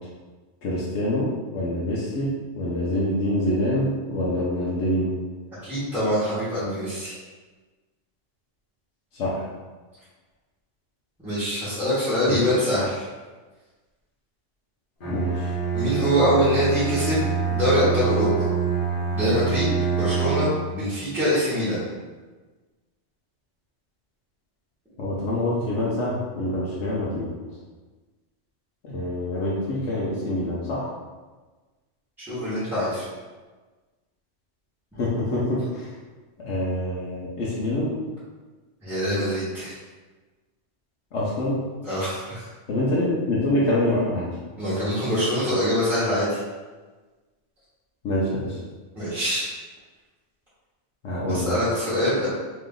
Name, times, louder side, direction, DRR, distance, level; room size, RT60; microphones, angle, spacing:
voice 1, 0.6-5.1 9.1-9.5 12.2-12.4 15.1-15.5 25.0-27.3 28.8-30.9 34.9-35.9 36.4-37.9 41.1-41.6 42.7-44.4 48.0-48.6 51.0-51.6, left 1 dB, 70° left, -7 dB, 1.0 m, -26 dB
voice 2, 5.6-7.1 11.2-13.0 15.7-17.2 17.5-18.5 19.1-21.9 32.2-33.1 38.8-39.8 41.8-42.4 44.6-46.4 48.9-49.5 51.3-52.3, equal, ahead, -12 dB, 1.4 m, -24 dB
Bowed string instrument, 15.0-20.7, right 6 dB, 50° left, 1.0 m, -26 dB
3.1 x 2.9 x 3.7 m, 1.3 s
omnidirectional pair, 1.2 m